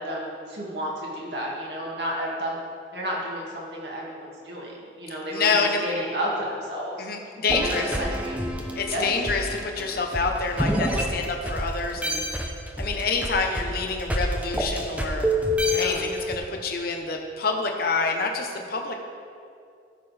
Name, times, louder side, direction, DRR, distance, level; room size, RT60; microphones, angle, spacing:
voice 1, 0.0-2.6 2.9-4.7 5.0-7.1 7.5-7.7 8.0-8.4 8.9-9.1 15.6-16.1, equal, 60° right, -4 dB, 2.2 m, -32 dB
voice 2, 5.3-6.0 7.0-8.0 8.8-12.2 12.8-15.3 15.8-19.0, left 4 dB, 50° left, 3 dB, 1.0 m, -27 dB
sound 1, 7.5-11.7 12.0-16.4, equal, 10° right, 0.7 m, -27 dB
14.5 x 6.8 x 3.4 m, 2.4 s
head